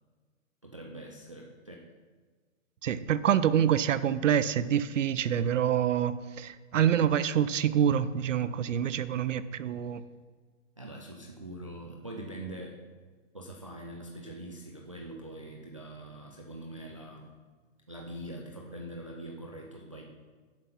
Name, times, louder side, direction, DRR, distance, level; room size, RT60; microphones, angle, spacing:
voice 1, 0.6-1.8 10.8-12.8 13.3-17.3 17.9-20.0, right 1 dB, 25° right, 0.4 m, -43 dB
voice 2, 2.8-10.0, right 9 dB, 65° right, 0.6 m, -26 dB
7.6 x 7.2 x 5.7 m
hypercardioid pair, 170°, 40 cm